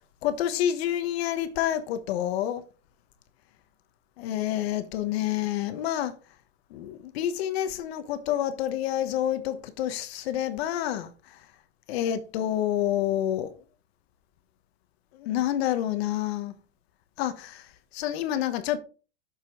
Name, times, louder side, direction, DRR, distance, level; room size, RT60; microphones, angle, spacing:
voice 1, 0.2-2.6 4.2-6.1 6.7-11.4 11.9-13.5 15.1-16.5 17.2-18.8, left 11 dB, 65° left, 1.2 m, -28 dB
6.8 x 5.6 x 4.7 m
supercardioid pair, 140°, 33 cm